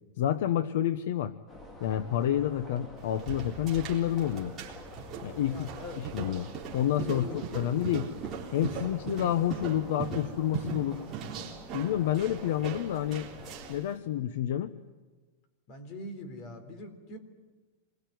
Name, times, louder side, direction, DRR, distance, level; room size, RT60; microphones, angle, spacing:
voice 1, 0.2-1.3 1.8-4.5 5.2-5.7 6.0-8.1 8.5-11.0 11.7-13.3 13.7-14.7, left 11 dB, 55° left, 13 dB, 1.0 m, -29 dB
sound 1, 1.5-13.8, equal, 15° left, 2.5 m, -48 dB
sound 2, 3.0-13.9, right 6 dB, 20° right, 3.8 m, -40 dB
voice 2, 5.3-6.1 7.1-7.6 15.7-17.2, left 2 dB, 30° left, 10 dB, 3.9 m, -42 dB
27.0 x 22.0 x 9.4 m, 1.3 s
supercardioid pair, 180°, 0 cm